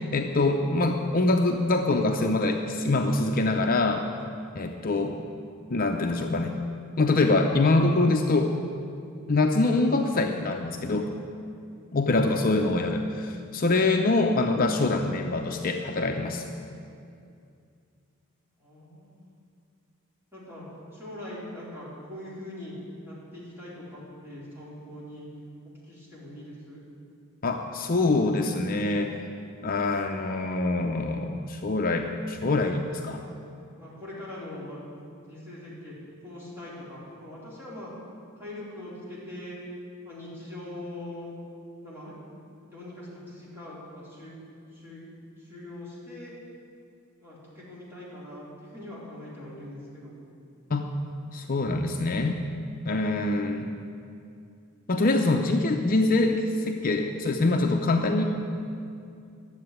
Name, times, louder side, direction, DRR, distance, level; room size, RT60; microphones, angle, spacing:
voice 1, 0.1-4.0 4.5-5.2 5.7-6.5 7.0-8.5 9.3-11.1 11.9-16.4 27.4-29.1 29.6-33.2 50.7-50.9 51.3-52.4 52.9-53.7 54.9-58.2, left 2 dB, 45° left, 3 dB, 0.6 m, -24 dB
voice 2, 18.6-19.2 20.3-20.6 20.9-22.7 23.1-25.3 25.6-26.8 33.8-36.0 36.2-37.9 38.4-39.6 40.0-41.4 41.8-42.3 42.6-44.4 44.7-45.1 45.4-46.3 47.2-50.2, left 1 dB, 10° right, -8 dB, 4.2 m, -42 dB
11.5 x 7.7 x 9.3 m, 2.4 s
head